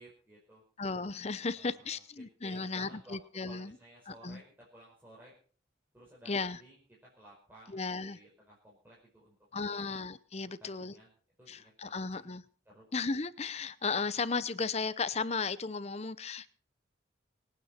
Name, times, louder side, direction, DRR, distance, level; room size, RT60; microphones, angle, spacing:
voice 1, 0.0-0.6 1.5-3.2 3.5-5.3 5.9-9.9 10.6-11.1 11.4-12.2 12.7-12.9, right 1 dB, 10° right, -6 dB, 5.1 m, -56 dB
voice 2, 0.8-3.7 4.1-4.4 6.3-6.6 7.7-8.2 9.5-10.9 11.5-12.4 12.9-16.5, left 4 dB, 35° left, 16 dB, 0.7 m, -35 dB
25.5 x 9.5 x 4.4 m, 0.43 s
head